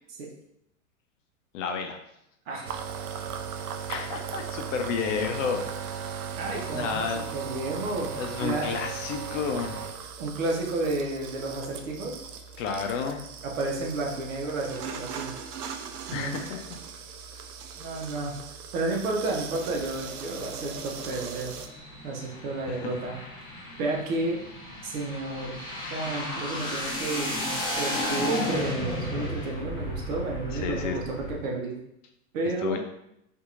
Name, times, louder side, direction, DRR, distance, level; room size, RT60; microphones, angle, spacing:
voice 1, 1.5-2.0 3.9-5.9 6.7-7.2 8.1-9.8 12.6-13.2 16.1-16.8 22.7-23.0 30.5-31.0 32.6-32.8, left 6 dB, 55° left, 4 dB, 0.6 m, -31 dB
voice 2, 2.5-2.8 6.4-8.1 8.4-8.7 10.2-12.1 13.4-15.3 16.1-16.4 17.8-18.3 18.7-21.6 22.0-23.2 23.8-24.4 24.8-25.6 25.9-27.3 27.8-31.8 32.3-32.8, right 2 dB, 60° right, 0 dB, 0.9 m, -31 dB
sound 1, 2.6-21.7, right 7 dB, 80° right, 0.5 m, -38 dB
sound 2, 19.6-31.4, left 1 dB, 10° left, 0.8 m, -34 dB
2.8 x 2.6 x 2.4 m, 0.78 s
hypercardioid pair, 110°, 44 cm